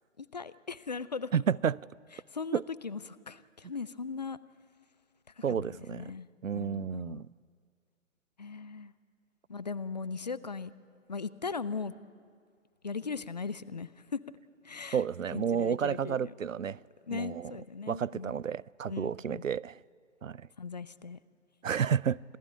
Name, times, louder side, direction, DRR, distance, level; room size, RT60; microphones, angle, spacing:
voice 1, 0.2-1.4 2.1-4.4 5.4-7.2 8.4-8.9 9.5-10.7 11.1-11.9 12.8-14.2 14.6-15.0 15.3-16.3 17.1-18.3 18.9-19.4 20.6-21.2, left 5 dB, 35° left, 0.5 m, -39 dB
voice 2, 1.3-1.8 2.5-2.6 5.4-6.0 6.4-7.3 14.9-16.8 17.1-17.5 17.9-19.8 20.2-20.4 21.6-22.2, right 7 dB, 85° right, 0.5 m, -31 dB
26.5 x 15.5 x 8.5 m
figure-of-eight pair, 140°, 38 cm